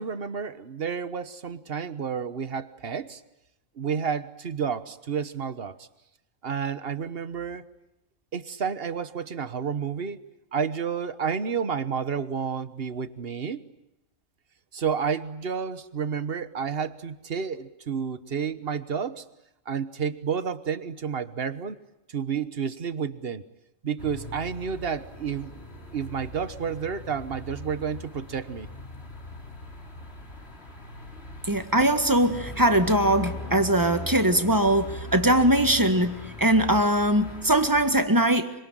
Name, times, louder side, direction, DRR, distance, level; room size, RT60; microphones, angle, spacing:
voice 1, 0.0-3.2 3.8-5.9 6.4-7.6 8.3-10.2 10.5-13.6 14.7-19.2 19.7-21.8 22.1-23.4 23.8-28.7, right 6 dB, 50° right, 13 dB, 1.4 m, -30 dB
sound 1, 24.0-38.0, left 1 dB, 50° left, 3.6 m, -40 dB
voice 2, 31.5-38.5, right 1 dB, 15° right, 8 dB, 1.8 m, -21 dB
26.0 x 25.0 x 9.2 m, 0.89 s
omnidirectional pair, 1.3 m